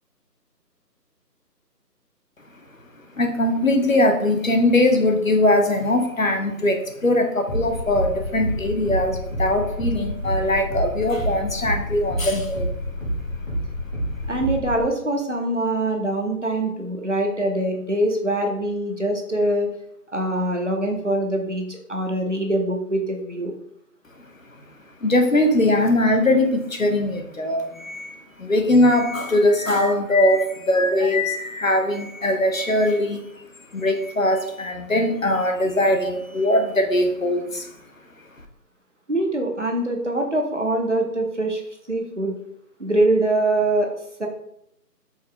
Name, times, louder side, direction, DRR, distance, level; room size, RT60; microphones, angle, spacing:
voice 1, 3.1-12.7 25.0-33.4 33.7-37.7, left 1 dB, 55° left, 5 dB, 0.6 m, -21 dB
sound 1, 7.5-14.8, equal, 35° left, 1.5 m, -28 dB
voice 2, 14.3-19.7 20.1-23.5 30.9-31.1 39.1-41.6 41.9-42.3 42.8-43.9 44.2-44.3, right 1 dB, 45° right, 2 dB, 0.6 m, -23 dB
4.6 x 2.8 x 3.3 m, 0.75 s
figure-of-eight pair, 175°, 49 cm